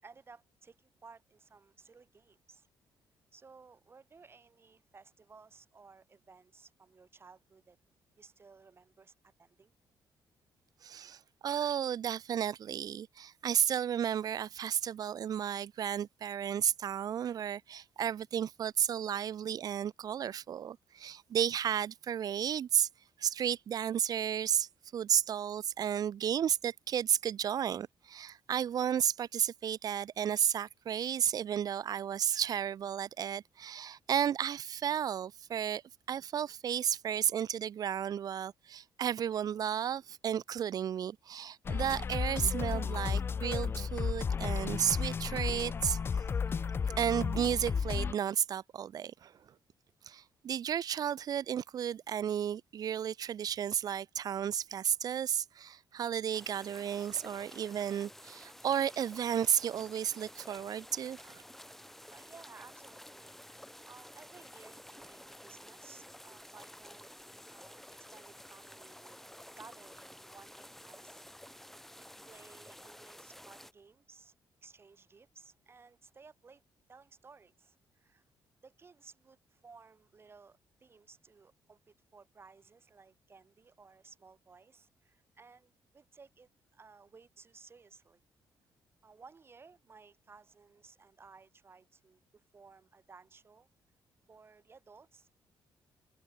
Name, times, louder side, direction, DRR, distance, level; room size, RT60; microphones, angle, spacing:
voice 1, 0.0-2.7 3.3-7.8 8.2-9.7 59.0-59.1 62.0-67.1 67.5-69.2 69.5-71.6 72.0-74.3 74.6-76.6 76.9-78.2 78.6-88.2 89.0-93.7 94.3-95.3, right 4 dB, 30° right, 3.4 m, -58 dB
voice 2, 10.8-22.9 23.2-35.8 36.1-46.0 47.0-49.3 50.1-61.4, right 9 dB, 50° right, 0.6 m, -33 dB
sound 1, 41.6-48.1, left 6 dB, 30° left, 0.3 m, -33 dB
sound 2, 56.3-73.7, left 1 dB, 5° left, 3.2 m, -52 dB
cardioid pair, 125°, 8 cm